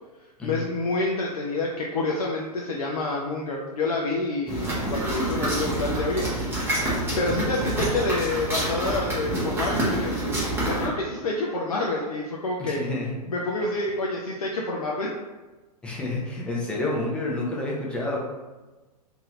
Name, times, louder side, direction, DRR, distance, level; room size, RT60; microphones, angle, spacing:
voice 1, 0.4-6.6 7.2-10.1 10.6-12.8 13.3-15.1, left 2 dB, 60° left, -2 dB, 0.4 m, -28 dB
sound 1, 4.5-10.9, right 1 dB, 10° right, 0.9 m, -27 dB
voice 2, 12.6-13.1 15.8-18.2, left 2 dB, 5° left, -4 dB, 0.5 m, -29 dB
2.7 x 2.6 x 3.0 m, 1.2 s
figure-of-eight pair, 105°, 21 cm